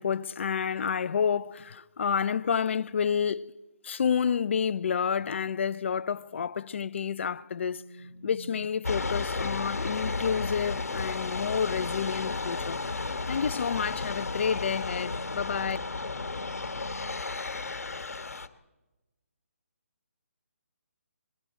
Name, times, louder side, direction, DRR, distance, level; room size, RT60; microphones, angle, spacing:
voice 1, 0.0-3.5 3.8-7.8 8.2-12.8 13.3-15.8, left 7 dB, 50° left, 0.8 m, -29 dB
sound 1, 7.6-17.2, right 1 dB, 20° right, 2.4 m, -50 dB
sound 2, 8.8-18.5, left 3 dB, 80° left, 1.5 m, -33 dB
29.5 x 22.0 x 4.5 m
figure-of-eight pair, 155°, 8 cm